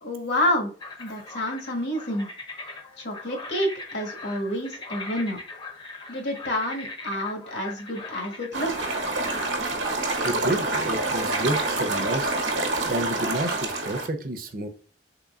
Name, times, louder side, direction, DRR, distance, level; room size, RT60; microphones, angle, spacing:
voice 1, 0.0-0.7 1.0-2.3 3.0-5.4 6.1-8.9, left 1 dB, 75° left, 3 dB, 1.3 m, -29 dB
sound 1, 0.8-9.5, left 3 dB, 25° left, 0.5 m, -40 dB
sound 2, 8.5-14.1, right 2 dB, 85° right, 1.0 m, -27 dB
voice 2, 10.2-12.3 12.9-14.7, right 1 dB, 50° right, 8 dB, 0.6 m, -30 dB
3.7 x 3.5 x 2.3 m, 0.40 s
head